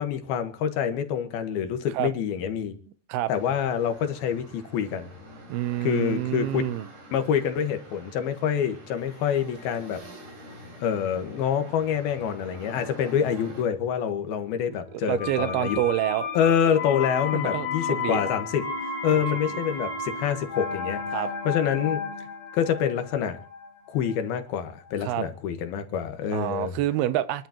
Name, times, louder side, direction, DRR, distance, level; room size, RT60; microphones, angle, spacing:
voice 1, 0.0-2.8 3.3-5.1 5.8-6.6 7.1-10.0 10.8-15.8 16.3-18.6 19.0-21.0 21.5-22.0 22.5-23.4 23.9-26.8, left 8 dB, 80° left, 3.3 m, -26 dB
sound 1, 3.3-13.6, right 1 dB, 55° right, 5.9 m, -46 dB
voice 2, 5.5-6.9 14.7-16.3 17.3-18.2 19.5-19.6 21.1-21.3 25.0-25.3 26.3-27.5, right 13 dB, 85° right, 2.8 m, -28 dB
Wind instrument woodwind instrument, 14.4-23.2, left 5 dB, 30° left, 1.5 m, -47 dB
sound 2, 15.2-24.9 25.2-25.3, left 4 dB, 55° left, 3.7 m, -33 dB
28.0 x 11.5 x 3.0 m
omnidirectional pair, 4.4 m